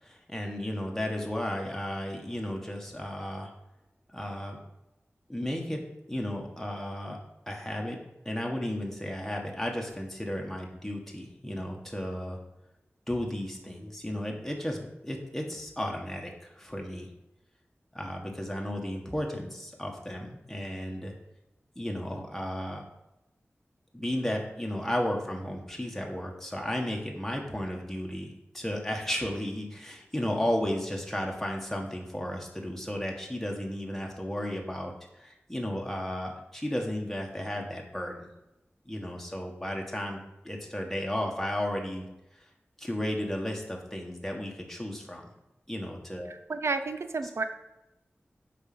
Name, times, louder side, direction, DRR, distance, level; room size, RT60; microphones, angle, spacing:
voice 1, 0.0-3.5 4.1-4.6 5.3-5.8 6.1-7.2 7.5-8.0 8.2-12.4 13.1-17.1 17.9-21.1 21.7-22.8 23.9-38.3 38.8-40.2 40.4-42.0 42.4-42.5 42.8-45.3 45.7-46.3, left 1 dB, 5° left, 0 dB, 1.7 m, -34 dB
voice 2, 46.3-47.4, right 3 dB, 80° right, 9 dB, 0.7 m, -31 dB
7.7 x 5.2 x 6.2 m, 0.93 s
wide cardioid pair, 75°, 4 cm